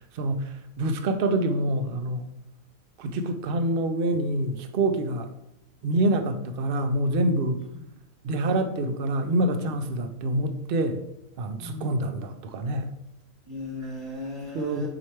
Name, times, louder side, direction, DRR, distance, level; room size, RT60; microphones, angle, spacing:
voice 1, 0.1-2.3 3.0-5.3 5.8-7.6 8.2-11.0 11.4-12.9 14.5-14.9, right 1 dB, 50° right, 7 dB, 0.7 m, -26 dB
voice 2, 11.6-12.1 13.5-14.9, left 2 dB, 25° right, -4 dB, 1.0 m, -37 dB
9.5 x 3.3 x 4.5 m, 0.86 s
omnidirectional pair, 1.6 m